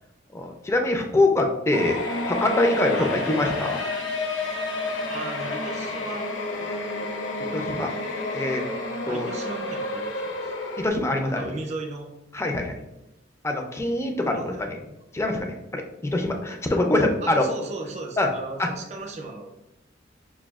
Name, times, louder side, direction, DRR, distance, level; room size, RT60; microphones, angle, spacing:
voice 1, 0.3-2.0 2.2-3.8 7.5-7.9 8.3-8.6 9.1-9.3 10.8-11.4 12.3-12.7 13.4-14.8 15.1-17.5 18.2-18.3 18.6-18.7, left 2 dB, 15° left, 3 dB, 0.4 m, -24 dB
sound 1, 1.7-10.9, left 2 dB, 80° left, 0.5 m, -30 dB
voice 2, 5.1-6.3 6.6-7.1 9.1-10.5 11.3-12.1 14.2-14.9 17.2-19.5, right 3 dB, 40° right, 2 dB, 0.6 m, -36 dB
5.9 x 2.3 x 2.3 m, 0.94 s
head